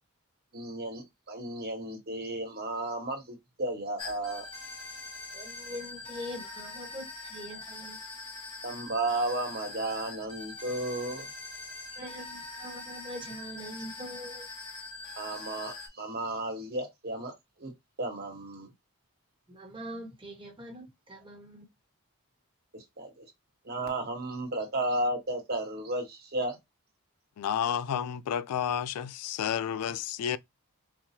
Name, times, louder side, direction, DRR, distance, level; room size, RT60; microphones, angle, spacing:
voice 1, 0.5-4.4 8.6-11.3 15.2-17.3 17.6-17.7 18.0-18.7 22.7-23.3 23.6-26.6, right 2 dB, 45° right, 1.2 m, -33 dB
sound 1, 4.0-15.9, left 2 dB, 25° left, 1.0 m, -43 dB
voice 2, 5.3-8.0 11.9-14.5 19.5-21.7, equal, 20° right, 1.2 m, -43 dB
voice 3, 27.4-30.4, left 8 dB, 85° left, 0.3 m, -31 dB
4.5 x 2.2 x 2.7 m
head